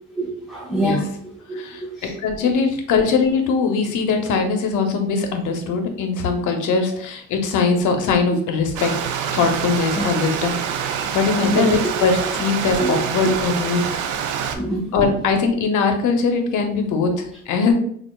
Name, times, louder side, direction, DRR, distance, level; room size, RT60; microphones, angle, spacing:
voice 1, 0.1-1.1 1.5-1.7 2.0-2.1 9.9-10.1 11.4-11.7 12.8-12.9 13.2-13.4 14.5-14.9, right 1 dB, ahead, -7 dB, 0.8 m, -24 dB
voice 2, 1.5-8.9 9.3-10.6 11.1-13.9 14.9-17.7, left 4 dB, 80° left, 5 dB, 0.7 m, -21 dB
Stream, 8.8-14.6, right 7 dB, 85° right, 0.5 m, -26 dB
4.2 x 2.4 x 2.2 m, 0.65 s
cardioid pair, 90°, 30 cm